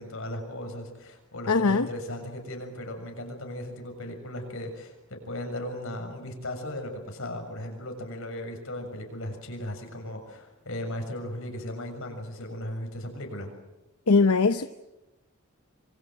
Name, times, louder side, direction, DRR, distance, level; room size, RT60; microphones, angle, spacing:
voice 1, 0.0-13.5, left 1 dB, 65° left, 4 dB, 6.9 m, -37 dB
voice 2, 1.5-1.9 14.1-14.7, left 4 dB, 90° left, 10 dB, 0.9 m, -21 dB
27.0 x 24.5 x 7.7 m, 1.0 s
head